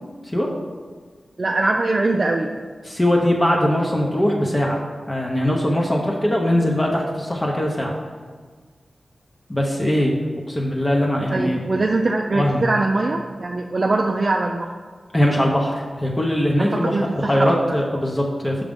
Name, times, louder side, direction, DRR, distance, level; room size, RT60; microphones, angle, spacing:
voice 1, 1.4-2.5 11.3-14.7 16.6-17.8, right 2 dB, 50° right, 1 dB, 0.4 m, -22 dB
voice 2, 2.8-4.8 5.1-7.9 9.5-10.2 10.5-11.6 11.9-12.0 12.3-12.7 15.1-18.6, equal, 25° left, -1 dB, 0.7 m, -21 dB
6.4 x 4.9 x 3.6 m, 1.5 s
wide cardioid pair, 75°, 0 cm